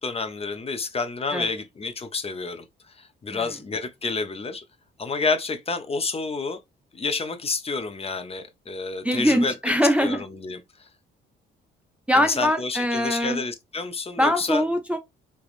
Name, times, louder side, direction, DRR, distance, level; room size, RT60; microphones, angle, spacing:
voice 1, 0.0-2.6 3.0-4.6 5.0-6.6 6.9-9.5 10.0-10.6 12.1-14.6, left 4 dB, 30° left, 0.7 m, -29 dB
voice 2, 9.0-10.2 12.1-13.4 14.2-15.0, equal, 5° right, 0.5 m, -22 dB
3.4 x 3.0 x 2.5 m
cardioid pair, 90°, 20 cm